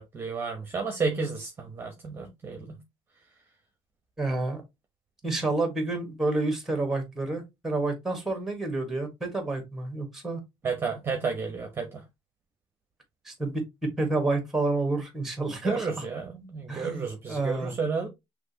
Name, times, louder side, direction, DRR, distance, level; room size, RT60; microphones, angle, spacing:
voice 1, 0.0-2.8 5.2-5.4 10.6-12.0 15.6-18.1, right 4 dB, 20° right, 0.9 m, -32 dB
voice 2, 4.2-4.6 5.2-10.4 13.2-16.1 16.7-17.7, right 2 dB, 5° right, 1.4 m, -29 dB
6.0 x 3.0 x 2.8 m
cardioid pair, 145°, 10 cm